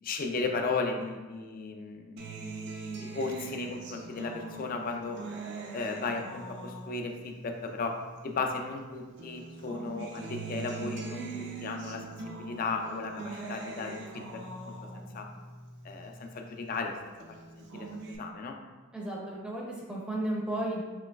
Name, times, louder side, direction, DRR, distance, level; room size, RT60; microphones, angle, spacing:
voice 1, 0.0-2.2 3.1-5.2 5.7-7.9 8.2-15.3 15.8-16.9 17.7-18.6, left 4 dB, 45° left, 4 dB, 0.4 m, -35 dB
Acoustic guitar, 2.2-8.8 9.2-16.8 17.2-18.2, right 3 dB, 60° right, 0.5 m, -42 dB
voice 2, 18.9-20.8, right 1 dB, 5° right, -3 dB, 0.5 m, -33 dB
5.0 x 3.1 x 2.3 m, 1.3 s
head